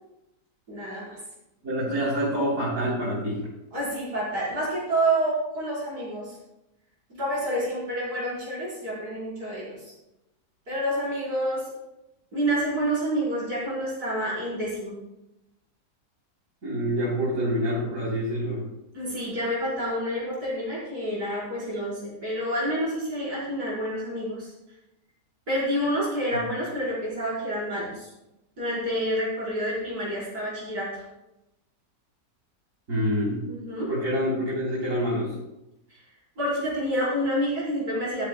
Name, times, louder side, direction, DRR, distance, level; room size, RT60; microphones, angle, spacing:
voice 1, 0.7-1.2 3.7-6.4 7.1-9.8 10.7-11.6 12.3-14.9 18.9-24.5 25.5-28.1 28.6-31.0 33.5-33.9 36.4-38.3, right 1 dB, 70° right, -7 dB, 5.6 m, -28 dB
voice 2, 1.6-3.4 16.6-18.6 32.9-33.4 33.9-35.3, equal, 55° right, -8 dB, 4.4 m, -26 dB
15.0 x 13.5 x 2.4 m, 0.91 s
omnidirectional pair, 1.7 m